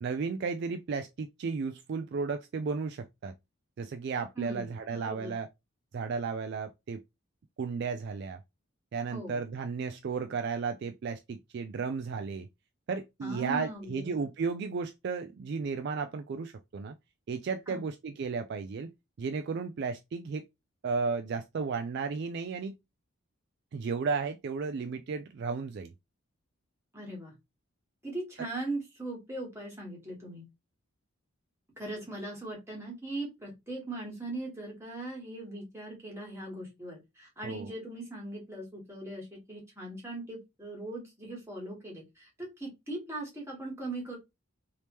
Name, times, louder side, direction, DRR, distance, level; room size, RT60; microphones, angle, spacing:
voice 1, 0.0-3.3 3.8-5.5 5.9-7.0 7.6-8.4 8.9-12.5 12.9-16.9 17.3-18.9 19.2-20.4 20.8-22.8 23.7-25.9 37.4-37.7, right 5 dB, 50° right, 0.3 m, -34 dB
voice 2, 4.3-5.3 9.1-9.4 13.2-14.2 17.7-17.8 26.9-27.3 28.0-30.4 31.8-44.2, right 2 dB, 10° right, 1.6 m, -40 dB
3.4 x 2.8 x 3.0 m
head